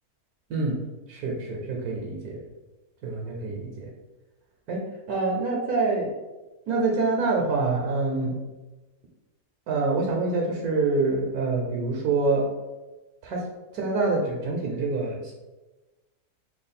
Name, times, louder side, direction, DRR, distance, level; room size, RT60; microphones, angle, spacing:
voice 1, 1.1-2.4 3.0-3.9 4.7-4.8 5.1-6.1 6.7-8.4 9.7-12.4 13.2-13.4 13.7-15.3, right 3 dB, 75° right, -1 dB, 1.0 m, -26 dB
3.2 x 2.3 x 4.0 m, 1.1 s
omnidirectional pair, 1.7 m